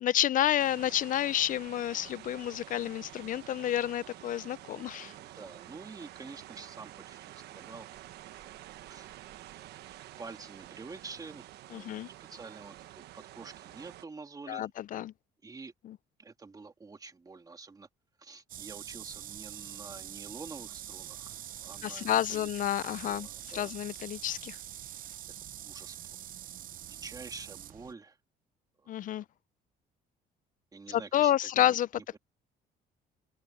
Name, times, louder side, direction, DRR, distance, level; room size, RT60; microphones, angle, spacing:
voice 1, 0.0-5.1 11.7-12.1 14.5-15.1 15.8-16.0 21.8-23.3 23.5-24.6 28.9-29.2 30.9-31.9, left 12 dB, 50° left, 0.5 m, -29 dB
sound 1, 0.6-14.1, right 14 dB, 75° right, 1.2 m, -49 dB
voice 2, 5.0-8.5 8.9-9.2 9.6-9.8 10.2-11.5 11.7-14.7 15.4-15.7 16.2-17.9 18.2-21.3 21.6-22.5 23.0-23.8 25.6-26.2 26.9-28.2 28.8-29.0 30.7-32.2, right 4 dB, 20° right, 2.1 m, -48 dB
sound 2, 18.5-27.9, right 11 dB, 55° right, 0.8 m, -44 dB
cardioid pair, 110°, 17 cm